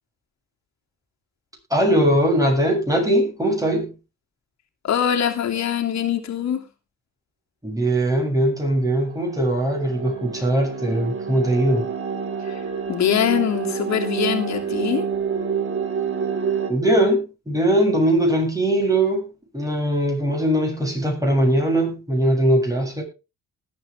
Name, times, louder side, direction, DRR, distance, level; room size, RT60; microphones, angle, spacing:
voice 1, 1.7-3.9 7.6-11.9 16.7-19.3 19.5-23.0, right 1 dB, 10° right, 1 dB, 7.9 m, -20 dB
voice 2, 4.8-6.6 12.5-12.6 12.9-15.1, left 9 dB, 65° left, 3 dB, 3.0 m, -23 dB
sound 1, 8.9-16.7, right 6 dB, 45° right, 2.9 m, -28 dB
19.5 x 9.0 x 3.6 m, 0.29 s
cardioid pair, 90°, 30 cm